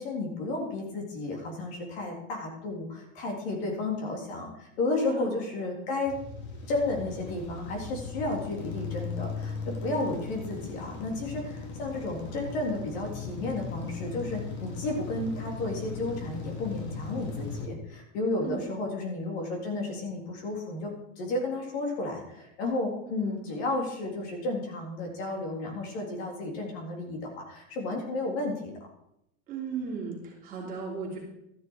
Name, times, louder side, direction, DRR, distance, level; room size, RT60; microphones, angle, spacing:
voice 1, 0.0-6.1 6.7-28.7, left 2 dB, 55° left, 0 dB, 3.8 m, -32 dB
sound 1, 6.1-17.7, left 4 dB, 30° left, 1.7 m, -38 dB
voice 2, 29.5-31.2, right 5 dB, 20° right, -3 dB, 3.2 m, -36 dB
13.0 x 11.0 x 4.9 m, 0.79 s
supercardioid pair, 180°, 38 cm